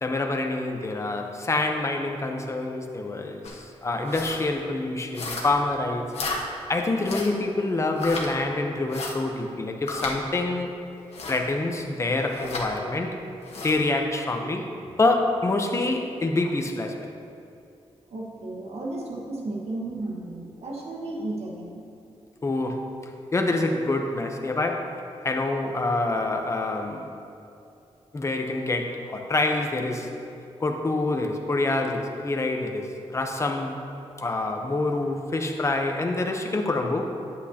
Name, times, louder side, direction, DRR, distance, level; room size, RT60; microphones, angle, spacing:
voice 1, 0.0-6.1 6.7-10.8 11.3-13.2 13.6-14.7 15.0-16.9 22.4-22.9 23.3-24.9 25.2-27.2 28.1-30.1 30.6-33.8 34.2-37.1, left 2 dB, 25° left, 3 dB, 0.7 m, -26 dB
sound 1, 3.4-3.6 4.0-4.4 5.1-5.6 6.1-6.4 7.0-7.4 8.0-8.3 8.9-9.1 9.9-10.2 11.1-11.4 12.3-12.7 13.4-13.8, left 3 dB, 75° left, 1.3 m, -33 dB
voice 2, 18.1-21.8 34.6-34.7, right 2 dB, 75° right, -2 dB, 1.4 m, -34 dB
10.5 x 8.3 x 2.8 m, 2.6 s
wide cardioid pair, 120°, 11 cm